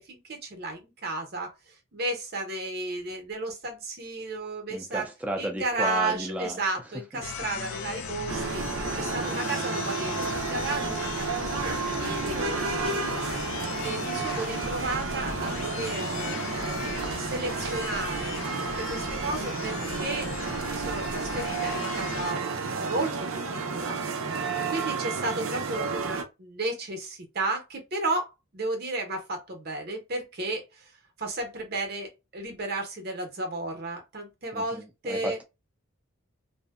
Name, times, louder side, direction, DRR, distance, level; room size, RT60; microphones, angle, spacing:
voice 1, 0.1-5.1 5.4-13.0 13.8-20.3 20.7-22.4 22.7-30.9 31.2-35.4, right 2 dB, 45° right, 0.8 m, -33 dB
voice 2, 4.7-6.6 7.4-7.5 34.5-35.4, equal, 5° right, 0.4 m, -33 dB
sound 1, 7.2-22.3, left 5 dB, 65° left, 0.4 m, -37 dB
sound 2, 8.3-26.2, right 4 dB, 75° right, 0.5 m, -32 dB
2.6 x 2.1 x 2.3 m
head